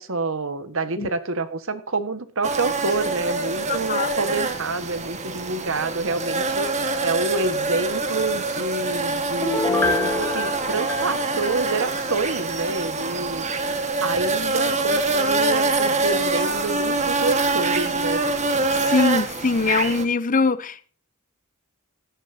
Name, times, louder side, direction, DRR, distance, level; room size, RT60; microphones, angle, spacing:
voice 1, 0.0-13.4 14.0-18.2, right 3 dB, 65° right, 1.6 m, -28 dB
sound 1, 2.4-20.0, right 3 dB, 35° right, 1.7 m, -25 dB
voice 2, 3.7-4.1 18.7-20.9, left 4 dB, 40° left, 0.7 m, -22 dB
Piano, 9.4-12.1 12.5-12.6, left 3 dB, 10° left, 1.5 m, -26 dB
17.0 x 12.0 x 2.9 m
head